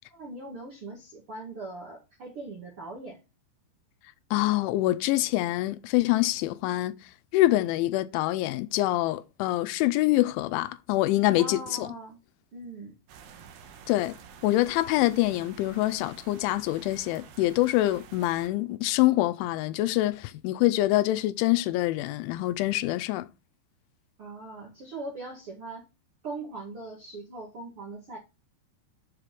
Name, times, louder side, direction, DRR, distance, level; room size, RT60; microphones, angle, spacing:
voice 1, 0.1-3.2 11.4-12.2 12.5-13.0 24.2-25.9 26.2-28.2, right 2 dB, 45° right, 1.8 m, -40 dB
voice 2, 4.3-11.9 13.9-23.3, left 17 dB, 85° left, 3.0 m, -25 dB
sound 1, 13.1-18.5, right 7 dB, 70° right, 2.9 m, -50 dB
7.5 x 5.0 x 6.1 m
omnidirectional pair, 5.4 m